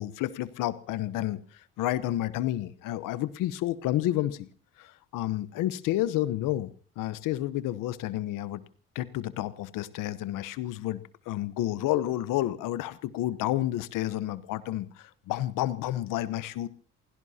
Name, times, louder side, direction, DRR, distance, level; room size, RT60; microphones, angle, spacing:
voice 1, 0.0-1.4 1.8-4.5 4.8-6.7 7.0-8.6 8.9-11.0 11.3-16.7, left 14 dB, 75° left, 15 dB, 1.1 m, -30 dB
28.5 x 16.5 x 2.9 m, 0.43 s
hypercardioid pair, 55°, 33 cm